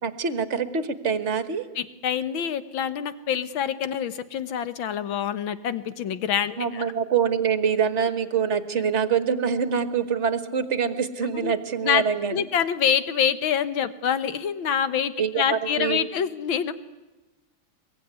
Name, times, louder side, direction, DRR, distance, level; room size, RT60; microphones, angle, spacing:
voice 1, 0.0-1.6 6.6-12.4 15.2-16.1, right 7 dB, 40° right, 11 dB, 1.6 m, -25 dB
voice 2, 1.8-6.9 11.3-11.5 11.8-12.0 12.3-16.7, left 8 dB, 80° left, 12 dB, 2.0 m, -26 dB
23.5 x 22.5 x 9.6 m, 1.1 s
omnidirectional pair, 2.1 m